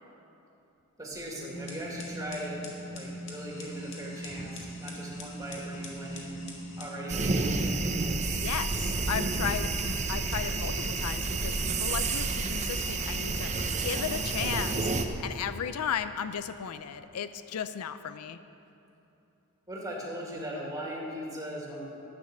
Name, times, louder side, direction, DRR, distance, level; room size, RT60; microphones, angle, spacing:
voice 1, 1.0-2.7 2.9-7.6 19.7-21.9, equal, 15° right, -3 dB, 2.0 m, -39 dB
sound 1, 1.5-7.8, equal, 60° left, 1.9 m, -41 dB
sound 2, 7.1-15.0, right 3 dB, 30° right, 0.7 m, -30 dB
voice 2, 8.4-13.5 13.8-18.4, left 8 dB, 75° left, 12 dB, 0.4 m, -35 dB
11.5 x 8.8 x 6.6 m, 2.8 s
head